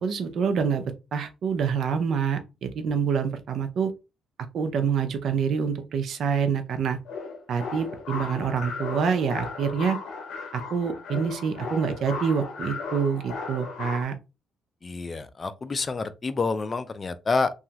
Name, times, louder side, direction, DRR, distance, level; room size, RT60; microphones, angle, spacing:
voice 1, 0.0-3.9 4.5-7.0 7.5-10.0 10.5-14.2, right 6 dB, 65° right, 0.5 m, -26 dB
sound 1, 7.0-14.0, left 4 dB, 85° left, 0.6 m, -36 dB
voice 2, 14.8-17.5, left 4 dB, 35° left, 0.4 m, -28 dB
2.9 x 2.4 x 2.8 m
cardioid pair, 90°, 0 cm